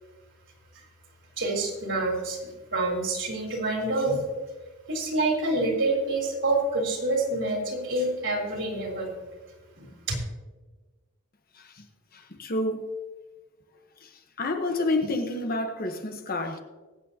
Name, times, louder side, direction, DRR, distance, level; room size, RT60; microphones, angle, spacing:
voice 1, 1.4-4.3 4.9-9.1 9.8-9.9, right 2 dB, 60° right, 3.7 m, -27 dB
voice 2, 11.5-11.9 12.1-12.9 14.0-16.6, left 2 dB, 40° left, 1.1 m, -29 dB
24.0 x 8.3 x 2.8 m
head